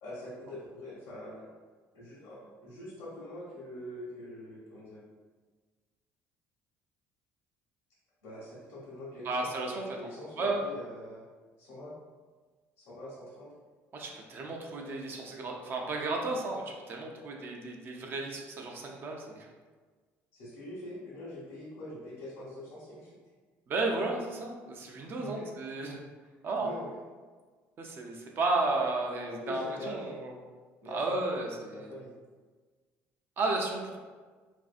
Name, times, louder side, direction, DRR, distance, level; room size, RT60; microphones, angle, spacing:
voice 1, 0.0-1.5 1.9-5.0 8.2-11.2 11.6-11.9 12.8-13.5 20.3-23.2 25.2-25.4 26.2-26.3 26.6-26.9 29.2-30.2 30.8-32.1, left 1 dB, 80° left, -9 dB, 0.9 m, -44 dB
voice 2, 9.2-10.0 10.4-10.6 13.9-19.5 23.7-26.0 26.4-26.7 27.8-30.3 30.8-31.9 33.4-34.0, right 2 dB, 45° right, 0 dB, 0.5 m, -33 dB
2.5 x 2.3 x 2.4 m, 1.4 s
cardioid pair, 110°, 5 cm